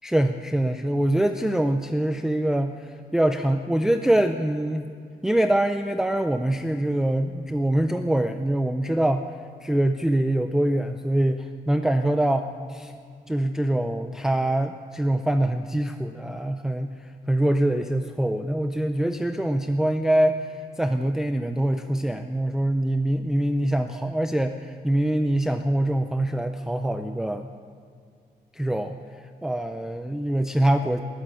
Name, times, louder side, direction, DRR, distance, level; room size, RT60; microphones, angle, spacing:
voice 1, 0.0-4.9 5.2-9.2 9.6-12.9 13.3-27.5 28.5-29.0 29.4-31.0, right 1 dB, 5° right, 6 dB, 0.4 m, -24 dB
19.0 x 9.0 x 8.5 m, 2.2 s
wide cardioid pair, 165°, 16 cm